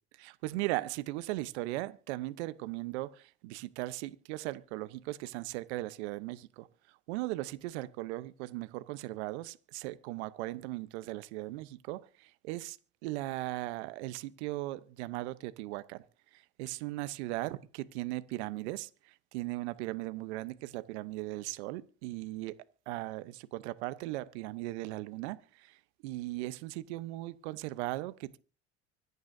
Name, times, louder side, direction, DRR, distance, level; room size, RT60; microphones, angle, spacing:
voice 1, 0.2-6.7 7.1-12.8 13.0-16.0 16.3-22.6 22.9-25.8 26.0-28.4, right 18 dB, 75° right, 0.9 m, -38 dB
25.0 x 9.4 x 2.7 m
hypercardioid pair, 75°, 34 cm